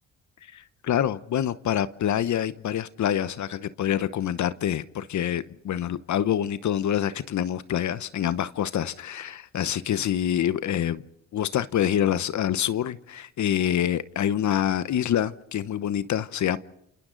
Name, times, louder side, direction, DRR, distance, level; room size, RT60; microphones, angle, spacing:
voice 1, 0.4-11.0 11.3-16.6, left 10 dB, 60° left, 15 dB, 0.9 m, -26 dB
28.5 x 27.5 x 3.9 m, 0.77 s
supercardioid pair, 65°, 32 cm